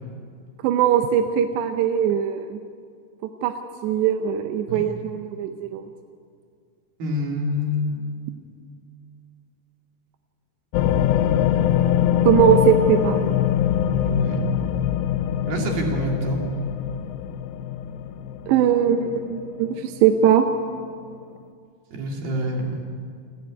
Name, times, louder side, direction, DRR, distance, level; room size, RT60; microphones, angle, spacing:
voice 1, 0.6-2.6 3.4-3.5 3.8-5.8 12.3-13.4 18.5-20.4, right 8 dB, 85° right, 6 dB, 3.0 m, -20 dB
voice 2, 7.0-8.4 14.0-14.4 15.5-16.4 21.9-22.8, left 1 dB, 65° right, 1 dB, 4.3 m, -27 dB
sound 1, 10.7-20.0 20.6-20.7, left 10 dB, 85° left, 2.9 m, -23 dB
29.0 x 10.5 x 9.6 m, 2.2 s
omnidirectional pair, 4.9 m